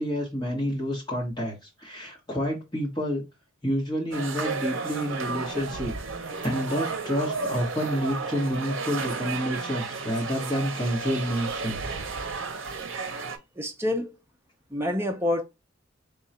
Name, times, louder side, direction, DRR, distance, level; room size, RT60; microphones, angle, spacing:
voice 1, 0.0-3.2 3.6-12.0 12.7-13.0, equal, 20° left, 1.3 m, -29 dB
sound 1, 4.1-13.4, right 4 dB, 70° right, 0.7 m, -33 dB
voice 2, 13.6-14.2 14.7-15.4, left 1 dB, 10° right, 0.6 m, -28 dB
3.7 x 2.3 x 4.2 m
head